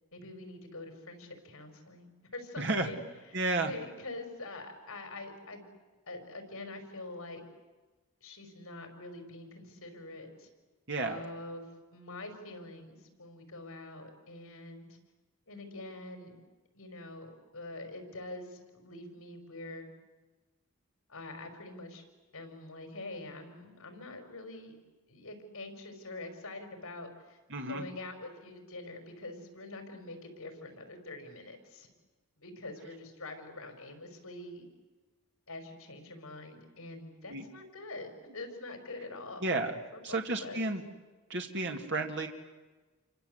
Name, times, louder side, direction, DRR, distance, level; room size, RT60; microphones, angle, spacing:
voice 1, 0.1-2.1 2.3-3.0 3.3-5.6 6.1-7.4 8.2-10.5 11.0-11.6 11.9-14.9 15.5-16.4 16.7-19.9 21.1-22.0 22.3-24.8 25.1-27.4 27.7-31.9 32.4-34.7 35.5-39.4 39.9-40.6, left 2 dB, 75° left, 6 dB, 5.3 m, -45 dB
voice 2, 2.6-2.9 3.3-3.7 10.9-11.2 27.5-27.9 37.3-37.4 39.4-39.8 40.0-40.8 41.3-42.3, right 2 dB, 55° right, 3 dB, 2.2 m, -32 dB
28.5 x 25.0 x 8.1 m, 1.2 s
head